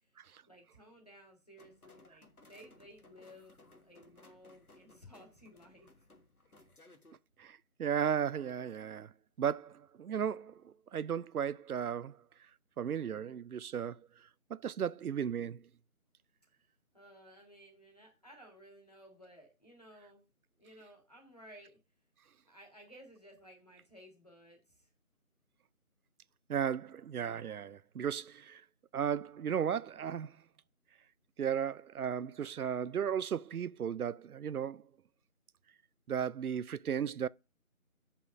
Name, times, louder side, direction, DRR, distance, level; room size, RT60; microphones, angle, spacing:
voice 1, 0.5-5.9 16.9-20.3 20.6-21.8 22.5-24.9, equal, 25° left, 2.0 m, -57 dB
sound 1, 1.6-7.1, left 2 dB, 90° left, 1.8 m, -61 dB
voice 2, 7.4-9.1 9.4-12.2 12.8-14.0 14.5-15.6 26.5-28.6 28.9-30.3 31.4-34.8 36.1-37.3, right 8 dB, 85° right, 0.5 m, -35 dB
6.7 x 5.6 x 5.9 m
figure-of-eight pair, 175°, 43 cm